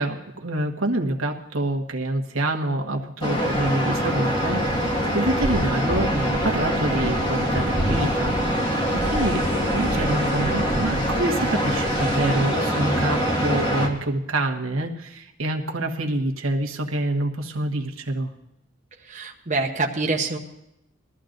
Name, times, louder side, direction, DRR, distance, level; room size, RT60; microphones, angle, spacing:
voice 1, 0.0-9.4 9.7-18.3, right 1 dB, 90° right, 1 dB, 1.3 m, -26 dB
sound 1, 3.2-13.9, equal, 25° left, 1.7 m, -23 dB
voice 2, 19.1-20.4, right 3 dB, 35° right, 1 dB, 0.9 m, -25 dB
21.0 x 13.5 x 2.6 m, 0.86 s
head